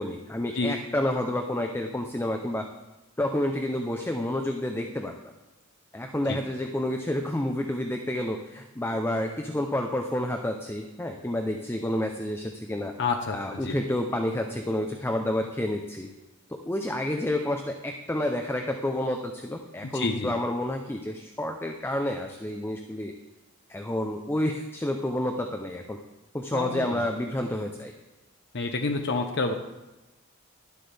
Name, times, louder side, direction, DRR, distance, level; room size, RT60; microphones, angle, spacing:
voice 1, 0.0-2.7 3.2-5.1 5.9-12.9 13.3-16.1 16.5-23.1 23.7-26.0 26.3-27.9, left 1 dB, 10° left, 4 dB, 0.6 m, -29 dB
voice 2, 13.0-13.8 19.9-20.3 26.5-27.0 28.5-29.5, left 3 dB, 60° left, 4 dB, 0.8 m, -28 dB
11.5 x 11.5 x 3.4 m, 1.1 s
head